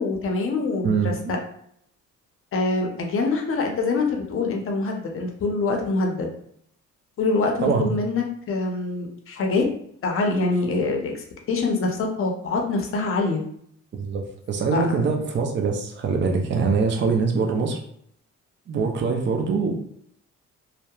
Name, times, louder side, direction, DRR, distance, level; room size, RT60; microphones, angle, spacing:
voice 1, 0.0-1.1 2.5-6.3 7.2-9.7 10.0-13.4 14.7-14.8, left 3 dB, 45° left, 2 dB, 0.6 m, -25 dB
voice 2, 0.8-1.3 7.6-7.9 13.9-17.8 18.7-19.8, right 5 dB, 40° right, 3 dB, 0.5 m, -23 dB
2.8 x 2.1 x 2.3 m, 0.67 s
cardioid pair, 90°, 30 cm